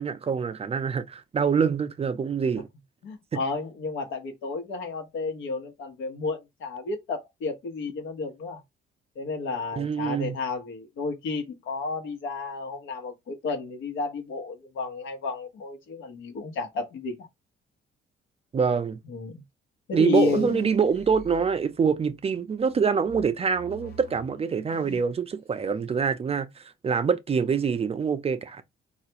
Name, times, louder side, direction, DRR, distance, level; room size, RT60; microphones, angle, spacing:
voice 1, 0.0-2.7 3.3-3.4 9.8-10.4 18.5-19.0 19.9-28.6, right 6 dB, 30° right, 0.4 m, -25 dB
voice 2, 3.0-8.6 9.2-17.3 19.1-19.4 19.9-20.5, left 3 dB, 80° left, 1.0 m, -32 dB
sound 1, 20.1-22.2 22.6-25.2 25.5-26.1, left 2 dB, 55° left, 0.8 m, -44 dB
3.3 x 2.4 x 2.8 m
cardioid pair, 90°, 20 cm